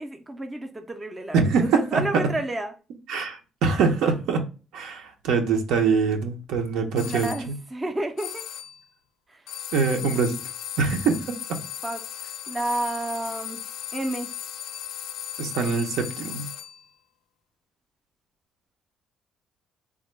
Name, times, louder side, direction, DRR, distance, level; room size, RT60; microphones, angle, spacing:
voice 1, 0.0-2.7 6.9-8.4 9.3-9.4 11.8-12.0 12.5-13.6 13.9-14.3, right 1 dB, 15° right, 0.4 m, -31 dB
voice 2, 1.3-2.2 3.1-4.5 4.7-7.5 9.7-10.4 10.8-11.6 15.4-16.5, right 5 dB, 80° right, 0.7 m, -24 dB
sound 1, 7.0-7.5 8.2-8.8 9.5-16.8, left 10 dB, 80° left, 0.4 m, -36 dB
3.4 x 2.1 x 3.2 m
cardioid pair, 145°, 0 cm